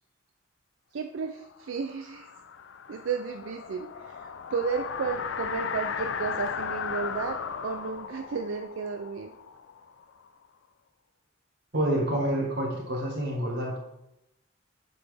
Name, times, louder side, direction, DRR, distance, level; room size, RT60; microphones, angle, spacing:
voice 1, 0.9-2.3 2.9-7.4 7.6-9.3, right 5 dB, 75° right, 6 dB, 0.4 m, -33 dB
sound 1, 1.6-10.3, left 6 dB, 65° left, 0.4 m, -36 dB
voice 2, 11.7-13.8, right 1 dB, 55° right, -1 dB, 1.6 m, -28 dB
8.2 x 3.9 x 3.4 m, 0.88 s
head